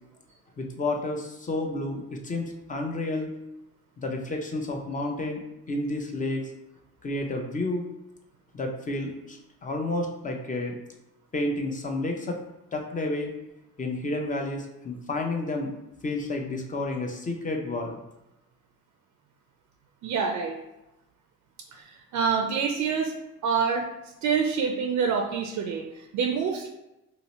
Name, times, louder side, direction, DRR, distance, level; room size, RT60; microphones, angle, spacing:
voice 1, 0.6-3.3 4.0-5.4 5.7-6.5 7.0-7.8 8.5-10.8 11.3-12.4 12.7-13.3 13.8-15.7 16.0-18.0, left 2 dB, 25° left, 2 dB, 0.6 m, -30 dB
voice 2, 20.0-20.6 21.7-23.1 23.4-23.9 24.2-26.7, right 6 dB, 70° right, 3 dB, 0.5 m, -26 dB
2.8 x 2.0 x 4.1 m, 0.90 s
cardioid pair, 90°, 30 cm